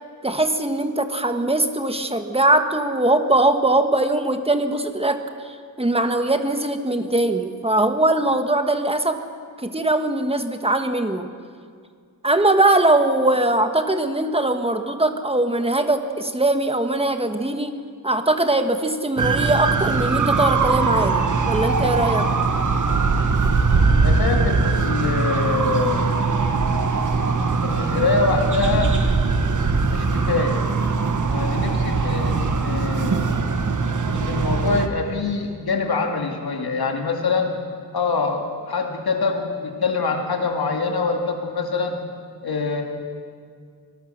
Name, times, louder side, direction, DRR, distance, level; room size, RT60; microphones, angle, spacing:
voice 1, 0.2-9.2 9.6-11.3 12.2-17.8 18.0-22.3, right 2 dB, 15° right, 7 dB, 1.4 m, -21 dB
sound 1, 19.2-34.9, right 4 dB, 55° right, 1.4 m, -21 dB
voice 2, 24.0-26.4 27.6-28.9 29.9-30.7 31.3-33.5 34.1-37.5 37.9-42.0 42.4-42.8, left 4 dB, 85° left, 2 dB, 2.7 m, -24 dB
25.5 x 19.0 x 6.6 m, 2.1 s
wide cardioid pair, 125°, 36 cm